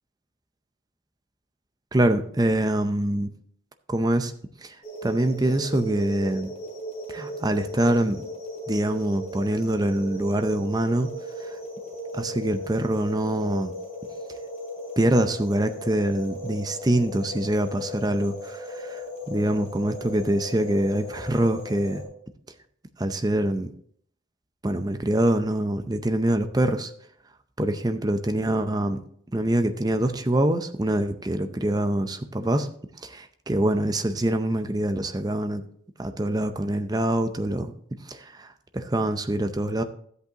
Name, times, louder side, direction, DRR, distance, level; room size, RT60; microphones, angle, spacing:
voice 1, 1.9-3.3 3.9-4.3 4.6-4.8 5.0-6.5 7.1-8.2 8.7-11.1 11.4-11.6 12.1-13.7 15.0-22.0 23.0-23.7 24.6-26.9 27.6-29.0 29.3-32.7 33.0-35.6 36.0-37.7 38.1-39.8, right 1 dB, 20° right, 7 dB, 0.6 m, -25 dB
sound 1, 4.8-22.0, equal, 35° left, 2.9 m, -37 dB
13.0 x 8.2 x 2.9 m, 0.64 s
head